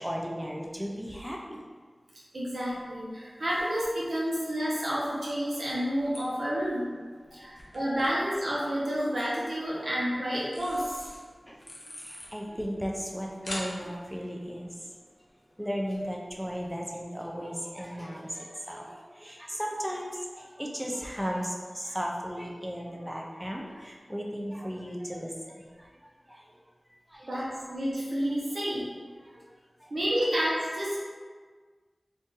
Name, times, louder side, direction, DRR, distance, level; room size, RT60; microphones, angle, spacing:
voice 1, 0.0-1.6 7.3-7.6 9.8-9.9 11.5-11.6 12.0-14.9 15.6-25.9 26.3-26.5 27.1-27.4 29.2-29.4 29.8-29.9, equal, 5° right, -1 dB, 0.4 m, -36 dB
voice 2, 2.3-6.9 7.3-11.0 27.2-28.9 29.9-31.0, equal, 80° right, -7 dB, 0.9 m, -30 dB
sound 1, 2.6-16.7, left 1 dB, 65° left, 0.8 m, -49 dB
2.5 x 2.5 x 3.7 m, 1.5 s
wide cardioid pair, 50°, 0 cm